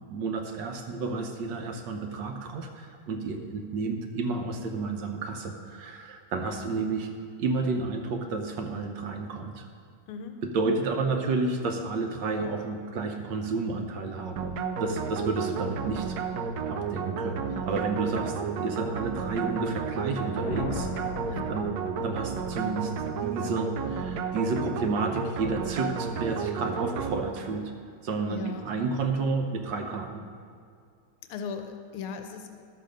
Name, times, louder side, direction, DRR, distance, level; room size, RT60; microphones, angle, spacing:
voice 1, 0.1-7.1 7.4-9.6 10.4-14.5 14.8-16.2 16.7-20.9 21.3-21.7 22.0-22.9 23.2-27.7 28.0-30.2, right 3 dB, 65° right, 4 dB, 1.3 m, -31 dB
sound 1, 14.4-27.7, right 5 dB, 85° right, 0.8 m, -32 dB
Thunder, 20.4-22.6, left 4 dB, 60° left, 1.0 m, -38 dB
voice 2, 21.3-21.8 28.3-28.7 31.3-32.6, left 6 dB, 85° left, 6 dB, 1.7 m, -37 dB
12.0 x 7.5 x 5.1 m, 2.2 s
omnidirectional pair, 2.4 m